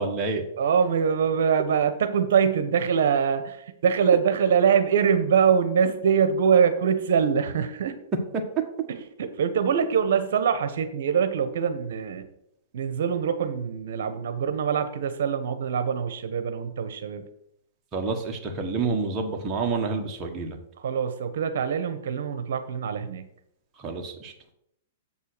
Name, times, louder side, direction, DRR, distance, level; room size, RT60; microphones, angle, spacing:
voice 1, 0.0-0.4 17.9-20.6 23.8-24.3, right 4 dB, 20° right, 1 dB, 1.4 m, -28 dB
voice 2, 0.6-7.9 8.9-12.3 12.7-17.2 20.8-23.2, right 7 dB, 70° right, 10 dB, 0.9 m, -23 dB
7.3 x 5.4 x 6.6 m, 0.76 s
hypercardioid pair, 150°, 0 cm